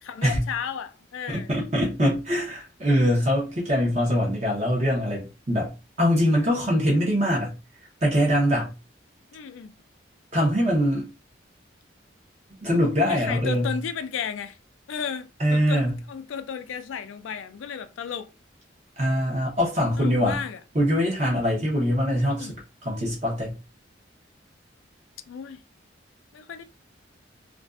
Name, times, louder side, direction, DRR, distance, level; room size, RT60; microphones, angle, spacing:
voice 1, 0.0-1.5 9.3-9.8 13.1-14.6 14.9-18.3 20.0-20.6 22.3-22.6 25.3-25.6 26.3-26.6, left 7 dB, 90° left, 0.3 m, -34 dB
voice 2, 1.3-7.5 8.0-8.7 10.3-11.1 12.6-13.8 15.4-16.0 19.0-20.4 20.7-23.6, equal, 35° right, 0.8 m, -23 dB
2.4 x 2.3 x 2.3 m
head